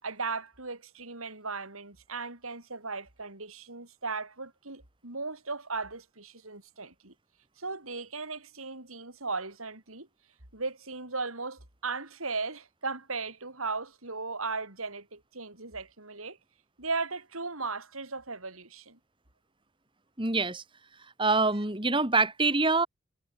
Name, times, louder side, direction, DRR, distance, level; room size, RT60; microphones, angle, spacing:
voice 1, 0.0-7.1 7.6-10.1 10.5-16.4 16.8-19.0, right 4 dB, 80° right, 6.3 m, -37 dB
voice 2, 20.2-20.6 21.2-22.9, right 3 dB, 25° right, 2.6 m, -25 dB
head